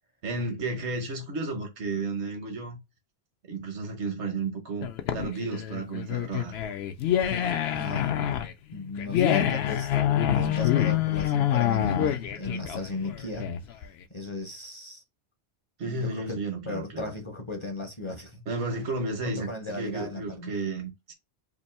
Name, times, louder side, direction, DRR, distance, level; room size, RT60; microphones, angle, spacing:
voice 1, 0.2-2.8 3.5-6.6 15.8-17.1 18.5-21.1, right 3 dB, 80° right, 1.3 m, -33 dB
sound 1, 4.8-13.8, left 10 dB, 70° left, 0.8 m, -26 dB
voice 2, 7.7-8.1 8.7-13.5 14.1-15.0 15.8-16.4 16.6-18.4 18.8-18.9 19.2-20.5, left 2 dB, 30° left, 0.6 m, -36 dB
2.9 x 2.6 x 4.2 m
omnidirectional pair, 1.1 m